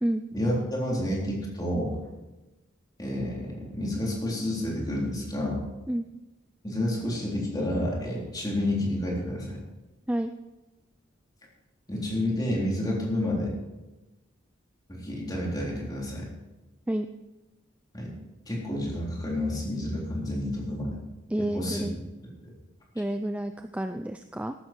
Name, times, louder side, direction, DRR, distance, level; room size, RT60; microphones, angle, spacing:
voice 1, 0.3-2.0 3.0-5.6 6.6-9.6 11.9-13.5 14.9-16.3 17.9-18.1 18.5-21.0 21.4-21.8 22.4-22.5, left 1 dB, 20° left, -3 dB, 3.7 m, -29 dB
voice 2, 21.3-22.0 23.0-24.5, right 1 dB, 5° right, 7 dB, 0.4 m, -29 dB
14.0 x 12.5 x 4.5 m, 1.1 s
head